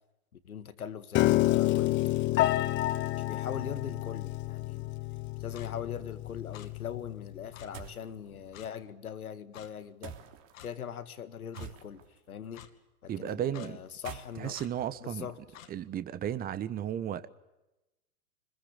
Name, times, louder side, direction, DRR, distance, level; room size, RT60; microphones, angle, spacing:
voice 1, 0.3-2.0 2.3-4.9 5.4-10.2 10.6-12.7 13.0-14.6 15.0-15.4, left 8 dB, 85° left, 2.0 m, -41 dB
Piano, 1.1-7.4, left 16 dB, 25° left, 0.9 m, -29 dB
Clock, 5.5-5.7 6.5-6.7 7.5-7.7 8.5-8.7 9.5-9.7 10.5-10.7 11.5-11.7 12.5-12.7 13.5-13.7 14.5-14.7 15.5-15.7, left 10 dB, 65° left, 2.6 m, -49 dB
sound 1, 7.7-8.1 10.0-10.5 11.5-12.2 13.9-15.8, right 7 dB, 40° right, 3.2 m, -47 dB
voice 2, 13.1-13.8 14.4-15.3 15.7-17.3, right 10 dB, 20° right, 1.1 m, -34 dB
25.5 x 21.5 x 8.2 m
hypercardioid pair, 115°, 42 cm